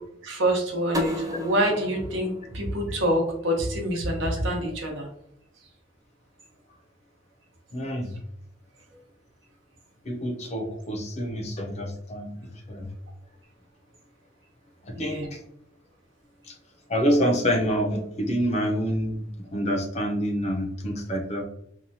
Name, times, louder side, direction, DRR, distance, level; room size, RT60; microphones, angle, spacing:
voice 1, 0.2-5.1 15.0-15.3, right 1 dB, 80° right, 1 dB, 0.8 m, -26 dB
sound 1, 0.9-3.7, left 1 dB, 20° right, 0.4 m, -34 dB
voice 2, 7.7-8.1 10.0-12.4 12.7-12.9 14.8-15.4 16.5-16.6 16.9-21.4, equal, 35° left, 2 dB, 0.5 m, -27 dB
2.8 x 2.2 x 2.6 m, 0.73 s
head